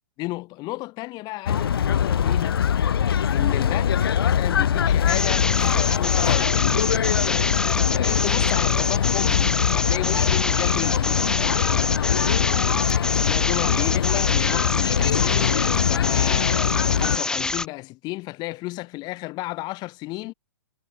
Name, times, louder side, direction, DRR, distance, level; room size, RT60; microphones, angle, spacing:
voice 1, 0.2-2.6 3.3-6.8 7.9-9.5 9.7-11.4 13.2-20.3, left 21 dB, 35° left, 7.0 m, -33 dB
sound 1, 1.5-17.2, left 8 dB, 70° left, 2.9 m, -22 dB
sound 2, 5.1-17.7, left 3 dB, 5° left, 0.8 m, -27 dB
hypercardioid pair, 125°, 13 cm